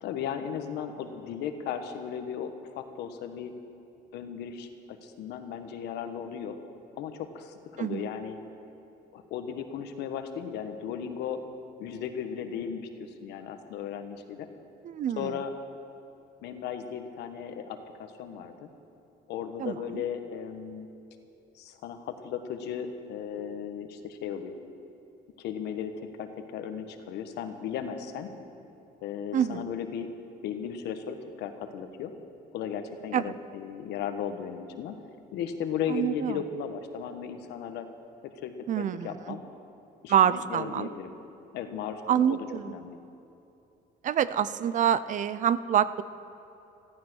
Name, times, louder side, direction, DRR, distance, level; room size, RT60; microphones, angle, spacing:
voice 1, 0.0-3.5 4.1-6.6 7.0-8.4 9.1-11.4 11.8-14.5 15.2-15.5 16.4-18.7 19.3-20.9 21.5-24.6 25.4-28.3 29.0-30.1 30.4-32.1 32.5-35.0 35.3-37.9 38.2-39.4 40.0-41.1 41.5-43.0, left 8 dB, 80° left, 7 dB, 1.3 m, -36 dB
voice 2, 7.8-8.1 14.8-15.4 19.6-20.0 29.3-29.7 33.1-33.3 35.9-36.4 38.7-39.4 40.1-40.9 42.1-42.7 44.0-46.0, right 9 dB, 50° right, 16 dB, 0.5 m, -26 dB
15.0 x 14.5 x 6.2 m, 2.8 s
cardioid pair, 110°, 17 cm